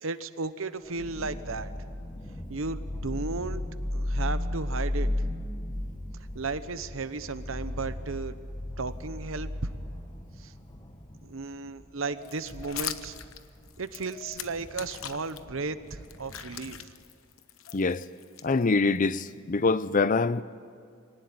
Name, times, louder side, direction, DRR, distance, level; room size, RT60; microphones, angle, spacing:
voice 1, 0.0-1.7 2.5-3.6 3.9-5.1 6.3-8.4 8.8-9.7 10.4-10.5 11.2-13.2 13.8-16.9, right 3 dB, 75° right, 1.0 m, -34 dB
sound 1, 0.8-16.8, left 1 dB, 25° left, 1.5 m, -36 dB
sound 2, 12.2-15.4 15.9-19.0, left 11 dB, 80° left, 1.0 m, -41 dB
voice 2, 17.7-18.0 18.4-20.4, left 3 dB, 40° left, 0.6 m, -24 dB
24.5 x 18.5 x 9.6 m
head